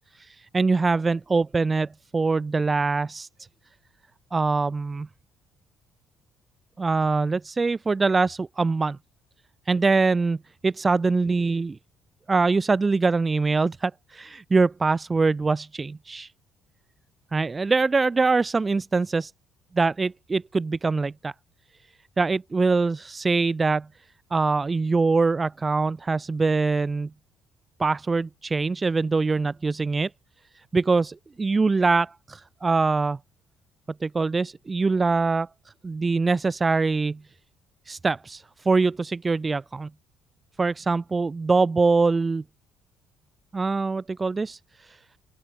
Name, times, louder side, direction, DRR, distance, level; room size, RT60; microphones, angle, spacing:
voice 1, 0.1-3.3 4.3-5.1 6.8-9.0 9.7-10.4 10.6-11.8 12.3-16.3 17.3-19.3 19.7-21.3 22.2-23.9 24.3-27.1 27.8-30.1 30.7-33.2 34.0-35.5 35.8-37.2 37.9-39.9 40.6-42.4 43.5-45.0, right 4 dB, 30° right, 0.4 m, -23 dB
open air
hypercardioid pair, 50°, 0 cm